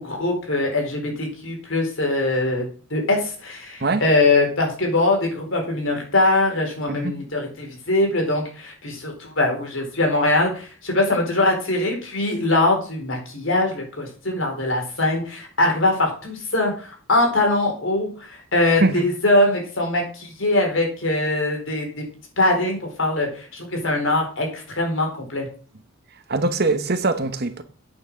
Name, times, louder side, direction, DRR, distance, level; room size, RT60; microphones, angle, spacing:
voice 1, 0.0-22.0 22.4-25.5, left 2 dB, 70° left, 4.6 m, -22 dB
voice 2, 26.3-27.6, right 3 dB, 50° right, 1.1 m, -22 dB
8.7 x 6.3 x 7.7 m
head